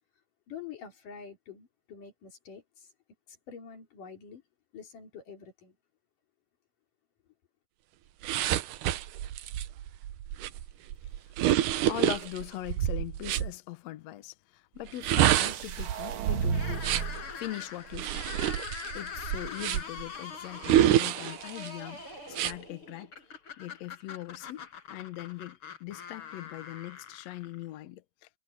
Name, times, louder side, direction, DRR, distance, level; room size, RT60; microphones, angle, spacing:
voice 1, 0.5-2.9 3.3-4.4 4.7-5.8, left 7 dB, 90° left, 5.4 m, -46 dB
sound 1, 8.2-13.5 14.9-17.2 17.9-20.0 20.6-21.7 22.3-22.5, right 12 dB, 85° right, 2.4 m, -28 dB
voice 2, 11.8-16.9 17.3-18.3 18.9-23.3 23.6-28.3, left 14 dB, 70° left, 1.9 m, -41 dB
sound 2, 15.4-17.3, right 5 dB, 50° right, 1.8 m, -34 dB
sound 3, 16.5-27.8, left 6 dB, 45° left, 5.6 m, -43 dB
omnidirectional pair, 3.6 m